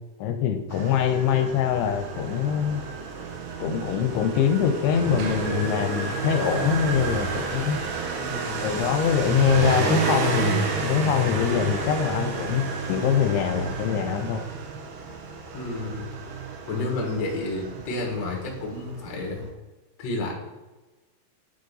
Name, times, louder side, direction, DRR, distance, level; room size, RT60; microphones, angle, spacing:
voice 1, 0.2-2.8 3.6-7.8 8.6-14.4, left 8 dB, 85° left, 6 dB, 2.6 m, -24 dB
Motorcycle, 0.7-19.5, right 5 dB, 80° right, 2.9 m, -30 dB
voice 2, 8.2-8.7 15.5-16.1 16.7-19.4 20.0-20.3, left 2 dB, 55° left, 0 dB, 2.0 m, -30 dB
9.2 x 3.9 x 3.9 m, 1.1 s
omnidirectional pair, 4.7 m